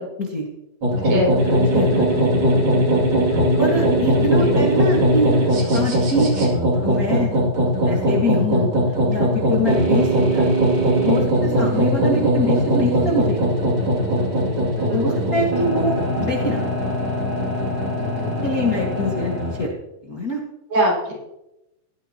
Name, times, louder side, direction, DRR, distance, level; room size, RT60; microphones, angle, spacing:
sound 1, 0.8-19.7, equal, 35° right, 3.1 m, -20 dB
voice 1, 1.0-2.4 4.2-4.7 9.9-10.1 14.9-15.4 20.7-21.1, right 1 dB, 55° right, -3 dB, 6.6 m, -25 dB
voice 2, 3.3-5.3 5.7-6.5 6.8-7.4 7.8-8.7 9.0-10.6 11.0-13.5 14.9-16.6 18.4-19.7 20.0-20.4, left 1 dB, 35° left, -2 dB, 1.5 m, -24 dB
18.0 x 13.0 x 2.9 m, 0.88 s
omnidirectional pair, 4.1 m